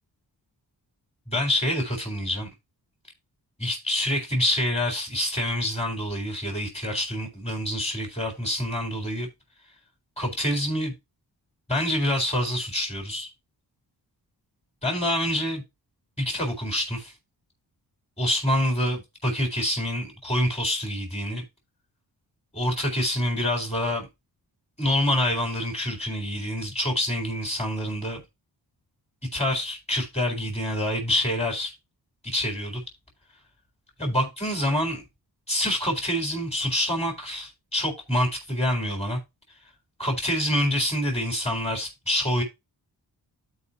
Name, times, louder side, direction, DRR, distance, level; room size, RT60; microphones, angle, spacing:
voice 1, 1.3-2.5 3.6-9.3 10.2-10.9 11.7-13.3 14.8-15.6 16.2-17.1 18.2-21.4 22.5-24.1 24.8-28.2 29.3-31.7 32.2-32.8 34.0-35.0 35.5-39.2 40.0-42.4, equal, 15° left, 3.9 m, -26 dB
12.5 x 4.9 x 2.8 m
cardioid pair, 50°, 43 cm